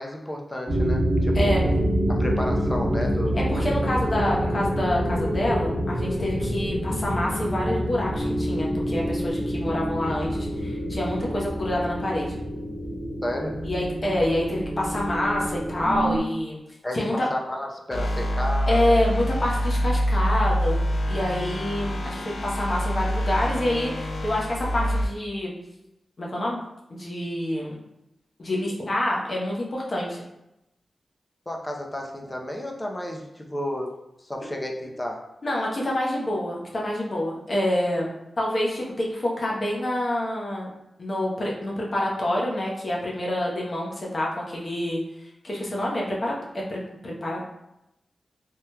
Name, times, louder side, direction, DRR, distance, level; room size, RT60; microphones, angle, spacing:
voice 1, 0.0-1.8 2.1-3.4 4.4-4.6 13.2-13.6 16.8-19.0 31.5-33.9 34.2-35.2, left 1 dB, 25° left, 1 dB, 0.6 m, -32 dB
sound 1, 0.7-16.2, equal, 5° right, 1.0 m, -26 dB
voice 2, 3.3-12.4 13.6-16.6 16.9-17.3 18.7-20.8 21.1-23.9 24.2-25.6 26.2-26.6 26.9-27.7 28.4-30.2 35.4-40.7 41.0-45.0 45.4-47.5, left 1 dB, 50° left, -3 dB, 0.8 m, -27 dB
sound 2, 17.9-25.1, equal, 70° left, 0.4 m, -26 dB
3.5 x 2.8 x 2.2 m, 0.88 s
cardioid pair, 45°, 0 cm